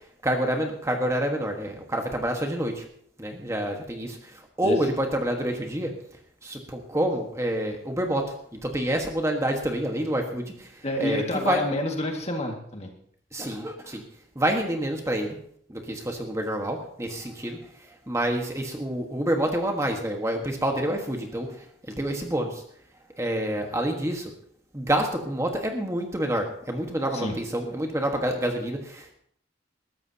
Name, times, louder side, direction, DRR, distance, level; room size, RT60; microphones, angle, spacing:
voice 1, 0.2-2.8 3.2-4.2 4.6-5.9 6.4-8.2 8.6-10.7 11.0-11.6 13.3-14.0 14.3-15.3 15.7-17.6 18.1-21.5 22.0-22.6 23.2-24.3 24.7-29.1, right 1 dB, 15° right, 3 dB, 1.4 m, -27 dB
voice 2, 10.8-12.9 27.1-27.4, left 1 dB, 35° left, 2 dB, 2.0 m, -29 dB
20.5 x 13.5 x 2.9 m, 0.64 s
head